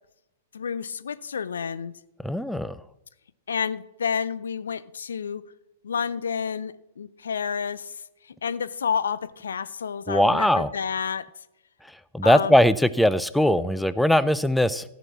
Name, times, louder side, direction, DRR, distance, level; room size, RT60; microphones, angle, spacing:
voice 1, 0.5-2.0 3.5-5.4 5.8-11.3 12.2-12.6, left 6 dB, 75° left, 16 dB, 0.5 m, -30 dB
voice 2, 2.2-2.7 10.1-10.7 12.1-14.8, left 1 dB, ahead, 15 dB, 0.5 m, -20 dB
14.0 x 6.0 x 7.2 m, 0.86 s
figure-of-eight pair, 105°, 0 cm